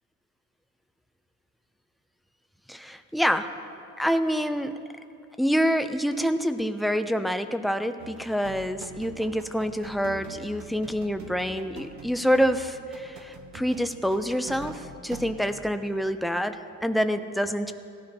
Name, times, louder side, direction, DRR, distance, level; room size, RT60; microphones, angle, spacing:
voice 1, 2.7-3.5 4.0-4.8 5.4-17.7, equal, ahead, 9 dB, 0.5 m, -27 dB
sound 1, 8.0-15.7, right 4 dB, 70° right, 1.1 m, -44 dB
17.5 x 12.5 x 2.9 m, 2.6 s
cardioid pair, 90°, 30 cm